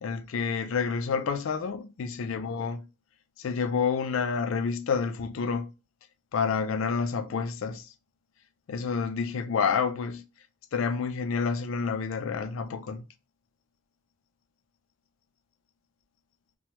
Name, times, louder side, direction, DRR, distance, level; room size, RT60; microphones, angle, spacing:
voice 1, 0.0-2.8 3.4-5.7 6.3-7.9 8.7-10.2 10.7-13.0, left 5 dB, 75° left, 0.4 m, -29 dB
2.9 x 2.2 x 2.8 m
head